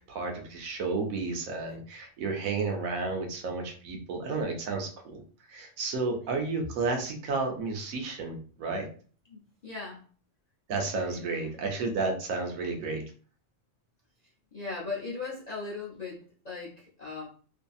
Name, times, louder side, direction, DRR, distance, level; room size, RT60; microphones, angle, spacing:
voice 1, 0.1-5.2 5.5-8.9 10.7-13.0, right 3 dB, 80° right, 3 dB, 1.1 m, -32 dB
voice 2, 9.3-10.0 10.8-11.5 14.5-17.3, left 4 dB, 50° left, -5 dB, 0.5 m, -39 dB
2.7 x 2.6 x 2.3 m, 0.41 s
omnidirectional pair, 1.4 m